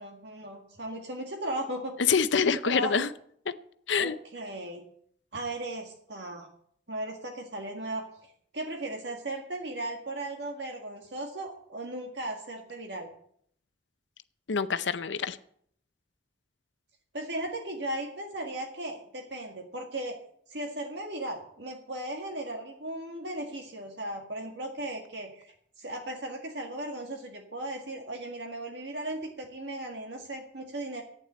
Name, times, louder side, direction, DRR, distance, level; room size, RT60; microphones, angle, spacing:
voice 1, 0.0-1.9 2.6-3.0 4.0-4.8 5.3-6.5 6.9-13.1 17.1-20.2 20.5-31.0, right 1 dB, 70° right, 3 dB, 1.8 m, -37 dB
voice 2, 2.1-3.1 3.9-4.1 14.5-15.4, left 6 dB, 80° left, 12 dB, 0.7 m, -26 dB
12.0 x 8.9 x 8.6 m, 0.64 s
head